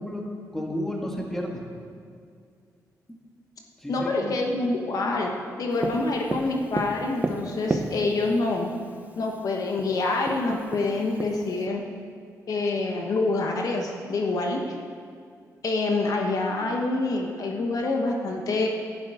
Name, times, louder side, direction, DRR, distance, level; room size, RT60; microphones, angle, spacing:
voice 1, 0.0-1.6 3.1-3.2 3.8-4.4, left 1 dB, 5° left, 0 dB, 1.7 m, -32 dB
voice 2, 3.9-5.3 5.6-8.7 9.2-11.8 12.5-14.8 15.6-18.7, left 3 dB, 65° left, 1 dB, 1.2 m, -26 dB
Tap, 5.8-8.4 9.4-9.5 9.8-9.9 10.2-11.7, right 2 dB, 25° right, 0.8 m, -31 dB
11.5 x 10.5 x 4.9 m, 2.2 s
cardioid pair, 105°, 7 cm